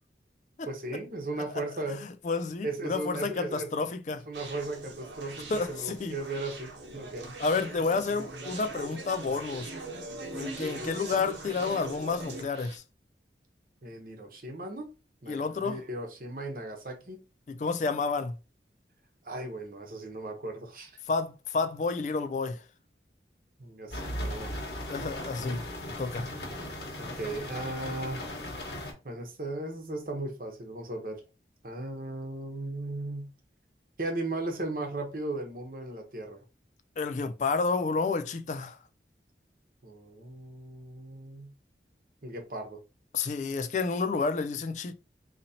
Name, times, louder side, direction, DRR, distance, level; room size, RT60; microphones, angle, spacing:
voice 1, 0.6-2.0 2.6-3.7 4.3-7.3 13.8-14.9 15.2-17.2 19.2-21.0 23.6-24.5 27.0-28.2 29.0-31.2 31.6-33.3 34.0-36.4 39.8-41.5 42.2-42.8, right 2 dB, 50° right, 0.9 m, -36 dB
voice 2, 2.2-4.2 5.5-6.2 7.4-9.7 10.3-12.8 15.3-15.8 17.5-18.3 21.1-22.6 24.9-25.6 26.0-26.3 37.0-38.8 43.1-44.9, left 4 dB, 40° left, 0.3 m, -30 dB
Conversation, 4.3-12.8, right 2 dB, 90° right, 0.9 m, -41 dB
sound 1, 23.9-28.9, left 1 dB, 70° left, 1.3 m, -37 dB
4.1 x 2.9 x 2.7 m
head